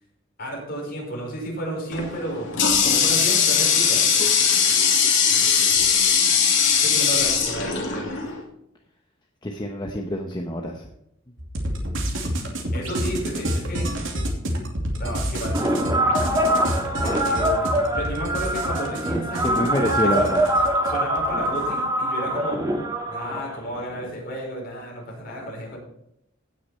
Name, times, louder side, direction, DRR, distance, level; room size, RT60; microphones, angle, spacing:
voice 1, 0.4-2.5 2.8-4.0 6.8-8.1 12.7-13.9 15.0-19.6 20.0-20.3 20.8-22.6 23.1-25.8, equal, 50° left, -2 dB, 5.4 m, -32 dB
Water tap faucet, 1.9-8.4, left 6 dB, 75° left, 2.8 m, -20 dB
voice 2, 9.4-10.8 19.4-20.4, equal, 20° left, 2 dB, 0.9 m, -26 dB
sound 1, 11.4-21.6, equal, 85° right, 2.6 m, -29 dB
sound 2, 15.5-24.1, right 1 dB, 20° right, 2.3 m, -24 dB
17.0 x 6.6 x 4.3 m, 0.77 s
head